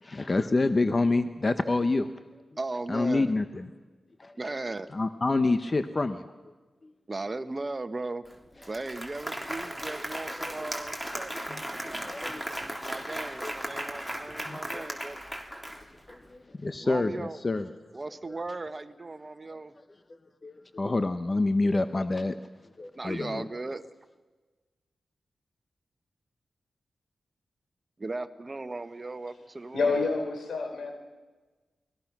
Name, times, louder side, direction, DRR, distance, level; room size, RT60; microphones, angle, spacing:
voice 1, 0.0-2.1 2.9-3.7 4.2-4.4 4.9-6.3 6.8-6.9 10.6-10.7 11.5-12.5 12.9-13.5 14.5-14.8 15.7-17.7 18.3-18.4 20.4-22.4 22.8-23.5, left 3 dB, 40° left, 9 dB, 1.1 m, -28 dB
voice 2, 2.6-3.4 4.4-4.9 7.1-8.2 8.7-15.2 16.8-17.4 17.9-19.7 22.9-23.9 28.0-30.0, right 2 dB, 40° right, 11 dB, 1.3 m, -37 dB
Applause, 8.3-8.4 8.6-16.2, equal, 5° left, 3.4 m, -36 dB
voice 3, 29.7-30.9, left 4 dB, 85° left, 5 dB, 4.2 m, -28 dB
29.0 x 20.5 x 6.2 m, 1.3 s
cardioid pair, 50°, 0 cm